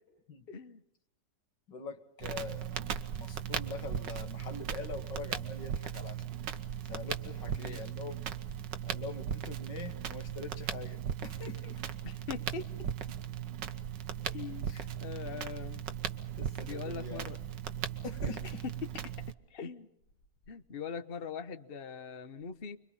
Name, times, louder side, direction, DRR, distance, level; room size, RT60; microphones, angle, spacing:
voice 1, 0.5-0.8 7.6-7.8 12.0-12.9 14.2-14.7 15.0-15.8 16.6-17.4 18.3-18.4 18.6-18.7 19.5-19.9 20.5-22.8, left 6 dB, 35° left, 1.2 m, -41 dB
voice 2, 1.7-2.8 3.2-6.2 6.9-8.2 8.8-11.8 14.7-14.9 16.4-17.3 18.0-18.6, left 4 dB, 90° left, 2.5 m, -44 dB
Crackle, 2.2-19.3, right 9 dB, 80° right, 1.8 m, -38 dB
30.0 x 23.0 x 5.6 m
omnidirectional pair, 1.9 m